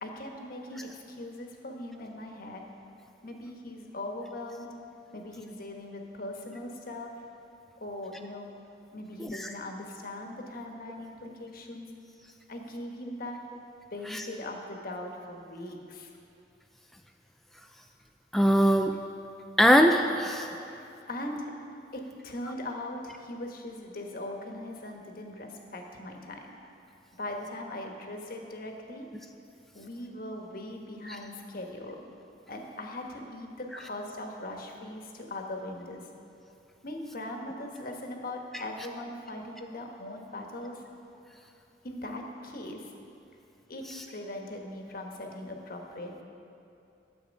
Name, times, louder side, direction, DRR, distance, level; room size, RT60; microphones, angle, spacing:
voice 1, 0.0-2.7 3.2-4.7 5.1-7.1 7.8-8.5 8.9-11.9 12.5-13.4 13.9-16.1 20.7-21.5 21.9-26.5 27.2-29.0 29.7-32.0 32.5-36.1 36.8-40.8 41.8-42.9 43.7-46.2, left 1 dB, 55° left, 2 dB, 1.2 m, -40 dB
voice 2, 9.2-9.5 14.1-14.3 18.3-18.9 19.6-20.5 31.1-31.2, equal, ahead, 3 dB, 0.3 m, -22 dB
12.5 x 7.9 x 5.3 m, 2.7 s
head